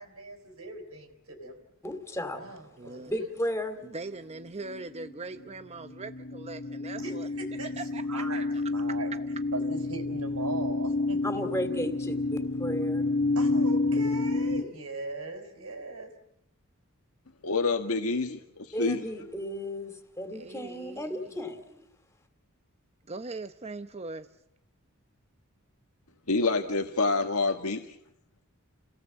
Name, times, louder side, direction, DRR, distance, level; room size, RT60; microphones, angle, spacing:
voice 1, 0.0-1.6 2.3-3.2 6.9-9.1 9.5-11.4 13.3-16.1, right 3 dB, 80° right, 3 dB, 4.5 m, -40 dB
voice 2, 1.8-2.4 3.1-3.8 11.2-13.1 18.7-21.9, equal, 10° left, 7 dB, 2.8 m, -34 dB
voice 3, 2.8-3.1 3.8-7.3 7.8-8.5 20.3-21.3 23.1-24.3, right 3 dB, 30° right, 10 dB, 0.8 m, -41 dB
sound 1, 4.7-5.5 5.8-14.6, left 3 dB, 50° left, 1.4 m, -29 dB
voice 4, 17.4-19.0 26.3-27.8, left 3 dB, 90° left, 5 dB, 1.6 m, -27 dB
30.0 x 18.0 x 7.5 m, 0.81 s
head